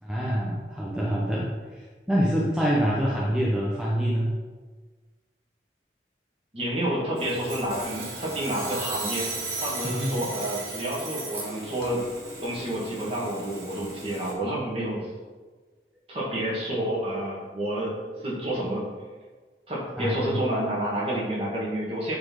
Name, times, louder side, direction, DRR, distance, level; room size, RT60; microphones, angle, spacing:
voice 1, 0.0-4.3 9.8-10.3 20.0-20.4, equal, 5° right, -6 dB, 1.0 m, -26 dB
voice 2, 6.5-9.3 9.6-12.0 12.4-15.1 16.1-18.8 19.7-22.2, right 1 dB, 35° right, -5 dB, 2.3 m, -29 dB
Sawing, 7.2-14.3, right 3 dB, 70° right, 2.5 m, -36 dB
9.5 x 4.4 x 4.8 m, 1.4 s
head